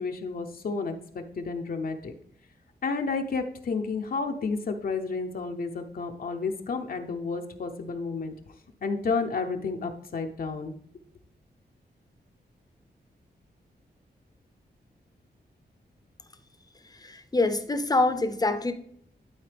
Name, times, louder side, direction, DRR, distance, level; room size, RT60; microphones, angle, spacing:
voice 1, 0.0-2.1 2.8-8.3 8.8-10.8, left 4 dB, 55° left, 4 dB, 0.7 m, -31 dB
voice 2, 17.0-18.7, left 2 dB, 20° left, 8 dB, 0.7 m, -25 dB
12.0 x 4.2 x 3.4 m, 0.67 s
wide cardioid pair, 125°, 18 cm